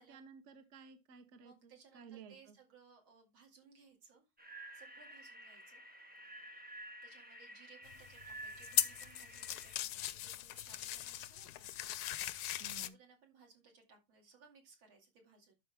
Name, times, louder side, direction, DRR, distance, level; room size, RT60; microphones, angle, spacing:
voice 1, 0.0-2.6 12.6-13.0, right 6 dB, 45° right, 1.0 m, -55 dB
voice 2, 1.4-4.3 4.7-5.8 7.0-11.7 12.8-15.5, right 5 dB, 75° right, 3.2 m, -63 dB
sound 1, 4.4-9.8, right 1 dB, 10° right, 0.4 m, -52 dB
sound 2, 7.9-12.9, left 13 dB, 75° left, 0.9 m, -39 dB
12.0 x 4.6 x 3.4 m
omnidirectional pair, 2.3 m